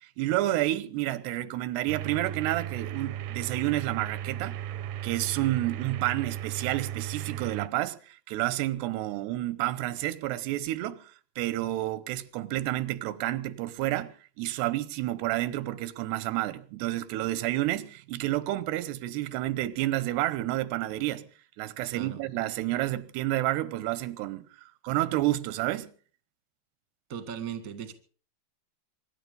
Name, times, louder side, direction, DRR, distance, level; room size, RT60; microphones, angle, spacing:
voice 1, 0.0-4.6 5.0-11.0 11.4-21.3 21.6-24.4 24.8-25.9, right 15 dB, 90° right, 3.0 m, -30 dB
sound 1, 1.9-7.7, right 11 dB, 75° right, 2.1 m, -36 dB
voice 2, 21.8-22.2 27.1-27.9, right 8 dB, 30° right, 1.6 m, -37 dB
24.0 x 11.0 x 5.4 m
omnidirectional pair, 4.6 m